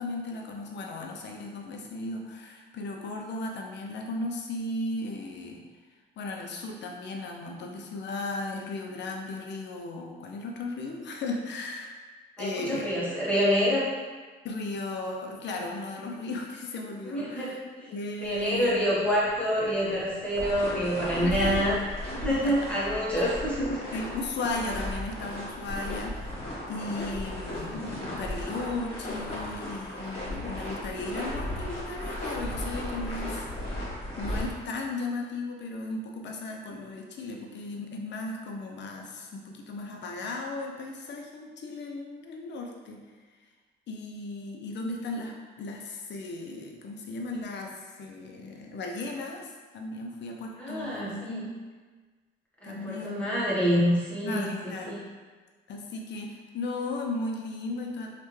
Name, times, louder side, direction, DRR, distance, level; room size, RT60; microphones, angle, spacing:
voice 1, 0.0-5.6 6.2-12.0 12.4-12.9 14.4-17.6 17.9-18.8 21.2-21.5 22.3-22.6 23.0-23.2 23.9-26.4 26.7-33.5 34.2-43.0 43.9-51.6 52.6-53.2 54.2-55.0 55.7-58.1, left 2 dB, 65° left, 1 dB, 0.6 m, -36 dB
voice 2, 12.4-13.9 17.1-17.5 17.8-17.9 18.2-21.7 22.1-23.8 50.6-51.5 52.6-54.5 54.9-55.0, equal, 5° left, -9 dB, 1.2 m, -27 dB
sound 1, 18.2-34.5, left 1 dB, 30° left, 1.4 m, -36 dB
3.3 x 2.4 x 3.1 m, 1.4 s
cardioid pair, 90°, 20 cm